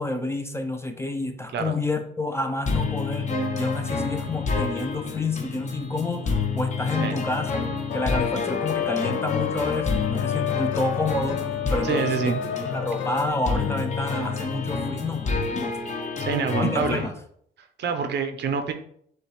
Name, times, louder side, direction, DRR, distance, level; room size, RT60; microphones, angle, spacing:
voice 1, 0.0-3.3 3.6-7.6 7.9-11.4 11.7-12.2 12.6-15.8 16.6-17.1, left 2 dB, 15° left, 6 dB, 0.5 m, -29 dB
sound 1, 2.7-17.1, left 4 dB, 35° left, 0.8 m, -29 dB
sound 2, 7.9-15.5, left 9 dB, 70° left, 0.5 m, -31 dB
voice 2, 11.8-12.4 16.2-17.1 17.8-18.7, right 6 dB, 60° right, 8 dB, 0.6 m, -26 dB
6.5 x 2.3 x 3.2 m, 0.66 s
cardioid pair, 90°, 20 cm